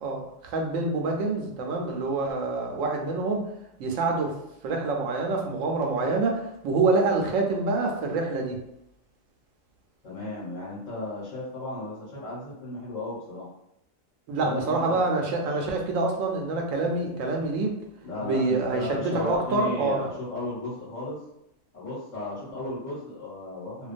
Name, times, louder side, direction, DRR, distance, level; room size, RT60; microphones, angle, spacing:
voice 1, 0.0-3.4 3.8-4.4 4.6-8.6 14.3-17.7 18.2-20.1, right 3 dB, 85° right, 2 dB, 1.0 m, -26 dB
voice 2, 10.0-13.5 14.4-15.0 18.0-21.2 21.7-23.9, left 2 dB, 75° left, -7 dB, 1.2 m, -34 dB
2.5 x 2.2 x 2.4 m, 0.80 s
omnidirectional pair, 1.3 m